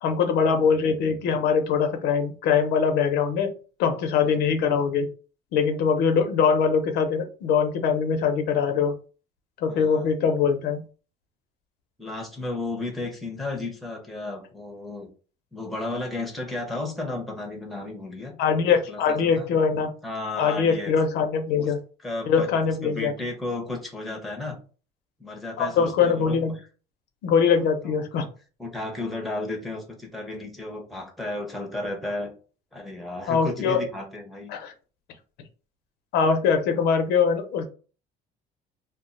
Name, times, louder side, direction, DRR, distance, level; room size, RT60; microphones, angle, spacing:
voice 1, 0.0-3.5 3.8-5.1 5.5-8.9 9.6-10.8 18.4-19.9 20.4-21.8 22.3-23.1 25.6-26.5 27.2-28.3 33.3-33.8 34.5-34.7 36.1-37.7, left 6 dB, 75° left, 6 dB, 0.6 m, -22 dB
voice 2, 4.2-4.5 9.7-10.1 12.0-15.1 15.5-18.3 18.9-19.5 20.0-20.9 21.6-21.7 22.0-22.5 22.8-24.6 25.2-26.4 27.5-28.3 28.6-32.3 32.7-34.5, left 2 dB, ahead, 1 dB, 0.7 m, -33 dB
2.3 x 2.1 x 3.8 m, 0.37 s
cardioid pair, 145°, 17 cm